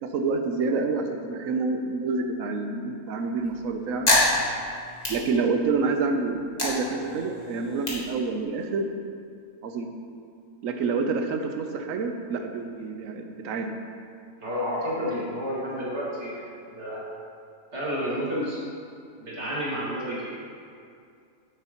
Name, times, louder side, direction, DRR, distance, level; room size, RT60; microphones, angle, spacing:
voice 1, 0.0-4.1 5.1-8.9 9.6-9.9 10.6-13.7, right 4 dB, 65° right, 5 dB, 1.0 m, -28 dB
sound 1, 3.3-5.9 6.3-8.9, left 1 dB, 25° left, 1.6 m, -27 dB
voice 2, 14.4-17.0 17.7-18.6 19.2-20.4, equal, 45° right, -7 dB, 2.4 m, -30 dB
9.3 x 8.3 x 3.0 m, 2.3 s
omnidirectional pair, 1.6 m